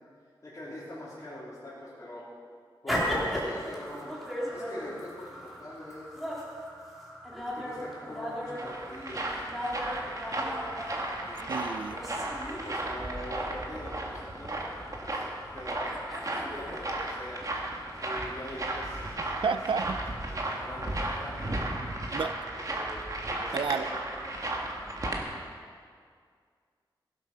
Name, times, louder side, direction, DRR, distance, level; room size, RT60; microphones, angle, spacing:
voice 1, 0.4-2.3 2.8-4.1 4.5-6.1 7.5-9.3 11.2-11.6 12.4-14.6 15.0-15.2 15.5-15.9 16.3-17.4 18.0-19.6 20.5-21.8 22.2-24.0, left 1 dB, 40° left, -12 dB, 3.5 m, -43 dB
sound 1, 2.9-21.6, equal, ahead, 2.7 m, -38 dB
sound 2, 8.2-25.2, right 1 dB, 45° right, 1.7 m, -35 dB
voice 2, 11.5-12.0 19.4-20.0 22.1-22.3 23.5-23.9, right 5 dB, 85° right, 11 dB, 0.5 m, -30 dB
16.5 x 8.1 x 5.7 m, 2.1 s
wide cardioid pair, 120°, 8 cm